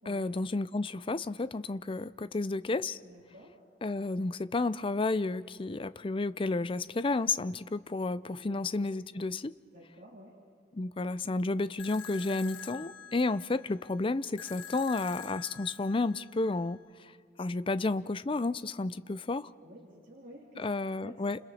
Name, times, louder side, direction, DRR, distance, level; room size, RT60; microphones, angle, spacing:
voice 1, 0.1-3.0 3.8-9.5 10.7-16.8 17.4-19.5 20.6-21.4, left 3 dB, 30° left, 0.5 m, -31 dB
voice 2, 3.0-3.5 8.4-8.6 9.7-10.3 19.6-20.6 21.0-21.2, equal, 50° right, 3.3 m, -51 dB
sound 1, 11.8-16.8, left 8 dB, 85° left, 1.0 m, -47 dB
30.0 x 27.5 x 4.3 m
head